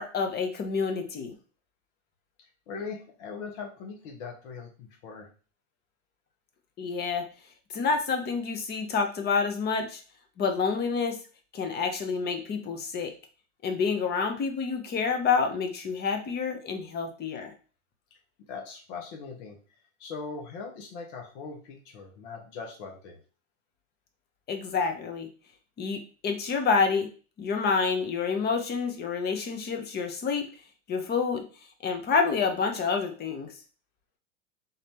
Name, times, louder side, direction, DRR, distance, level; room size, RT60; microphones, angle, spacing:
voice 1, 0.0-1.3 6.8-7.3 7.7-10.0 10.4-11.2 11.5-13.1 13.6-17.5 24.5-25.3 25.8-27.1 27.4-30.5 30.9-31.5 31.8-33.5, left 5 dB, 25° left, 5 dB, 0.9 m, -28 dB
voice 2, 2.7-5.3 18.5-19.6 20.0-23.2, left 5 dB, 55° left, 1 dB, 1.3 m, -40 dB
4.0 x 2.8 x 3.6 m, 0.37 s
hypercardioid pair, 105°, 39 cm